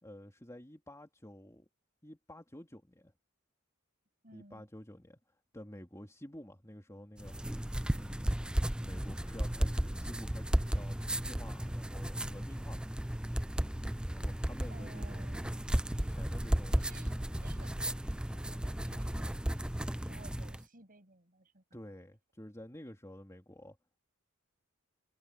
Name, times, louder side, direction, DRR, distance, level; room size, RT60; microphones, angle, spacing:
voice 1, 0.0-1.7 2.0-3.1 4.3-5.2 5.5-7.3 8.0-8.4 8.8-12.9 14.0-15.3 15.8-17.1 21.7-23.8, left 1 dB, 15° left, 3.3 m, -50 dB
voice 2, 4.2-4.7 14.7-15.7 16.7-19.3 20.0-21.6, right 2 dB, 40° right, 7.9 m, -57 dB
sound 1, 7.2-20.6, equal, 5° right, 0.5 m, -34 dB
head